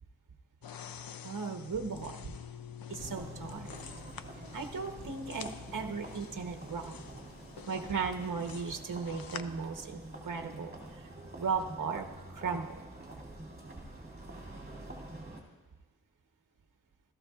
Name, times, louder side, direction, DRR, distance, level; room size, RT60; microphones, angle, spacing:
sound 1, 0.6-9.4, left 8 dB, 65° left, 0.6 m, -47 dB
voice 1, 1.2-2.3 2.9-3.7 4.5-7.0 7.7-11.1 11.4-12.8, right 5 dB, 55° right, 5 dB, 1.1 m, -36 dB
sound 2, 3.0-15.4, right 1 dB, 25° right, 2.5 m, -47 dB
16.5 x 13.5 x 2.4 m, 1.3 s
wide cardioid pair, 90°, 38 cm